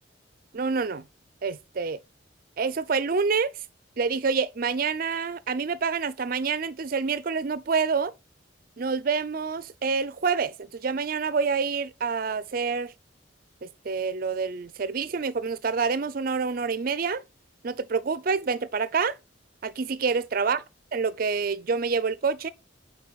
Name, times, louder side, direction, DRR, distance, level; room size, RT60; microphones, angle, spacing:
voice 1, 0.5-1.1 1.4-2.0 2.6-3.5 4.0-8.1 8.8-12.9 13.6-17.2 17.6-19.2 19.6-20.6 20.9-22.5, right 5 dB, 50° right, 0.5 m, -27 dB
8.7 x 3.8 x 4.0 m
head